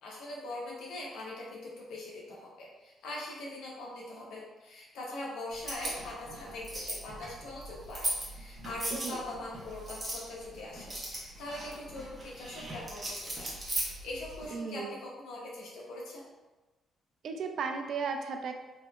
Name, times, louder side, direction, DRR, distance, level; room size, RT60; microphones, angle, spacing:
voice 1, 0.0-16.2, left 2 dB, 80° left, -3 dB, 0.9 m, -42 dB
sound 1, 5.5-14.5, right 1 dB, 30° right, 1.0 m, -39 dB
voice 2, 14.5-14.9 17.2-18.5, right 5 dB, 65° right, 5 dB, 0.4 m, -35 dB
3.1 x 2.8 x 2.3 m, 1.1 s
cardioid pair, 90°, 0 cm